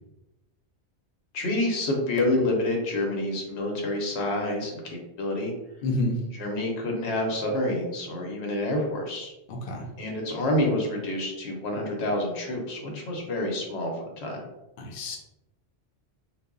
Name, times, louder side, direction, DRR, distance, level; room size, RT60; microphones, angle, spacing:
voice 1, 1.3-5.5 6.3-9.3 10.0-14.4, left 1 dB, 80° left, 0 dB, 0.9 m, -28 dB
voice 2, 5.8-6.2 9.5-9.9 14.8-15.2, left 1 dB, 60° left, 0 dB, 0.6 m, -28 dB
2.0 x 2.0 x 3.6 m, 0.95 s
omnidirectional pair, 1.1 m